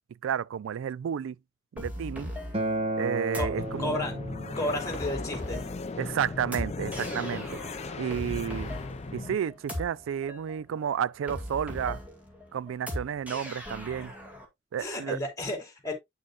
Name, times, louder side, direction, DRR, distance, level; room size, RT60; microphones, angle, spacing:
voice 1, 0.2-1.4 1.7-2.3 3.0-4.0 6.0-7.6 8.0-8.7 9.1-12.0 12.5-14.1 14.7-15.2, right 8 dB, 85° right, 0.3 m, -31 dB
sound 1, 1.8-14.5, equal, 10° right, 2.2 m, -39 dB
Acoustic guitar, 2.5-7.7, right 1 dB, 30° right, 1.1 m, -36 dB
voice 2, 3.4-4.1 4.6-5.6 14.8-15.9, left 1 dB, 15° left, 3.0 m, -33 dB
sound 2, 3.6-9.4, left 3 dB, 35° left, 0.5 m, -37 dB
8.8 x 6.4 x 2.4 m
head